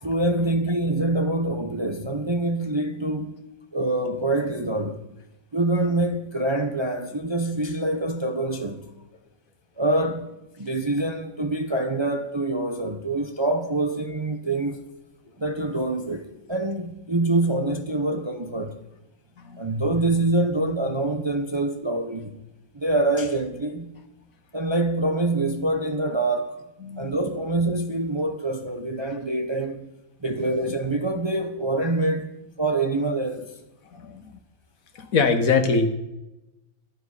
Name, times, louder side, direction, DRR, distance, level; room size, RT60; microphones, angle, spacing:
voice 1, 0.0-3.4 3.7-5.0 5.5-8.9 9.8-10.3 10.6-14.8 15.4-18.8 19.6-22.4 22.7-23.9 24.5-26.6 27.0-29.9 30.2-33.5, right 2 dB, 25° right, 0.6 m, -25 dB
voice 2, 26.8-27.1 33.9-34.4 34.9-35.9, left 4 dB, 75° left, 1.6 m, -23 dB
12.0 x 10.5 x 4.9 m
omnidirectional pair, 1.5 m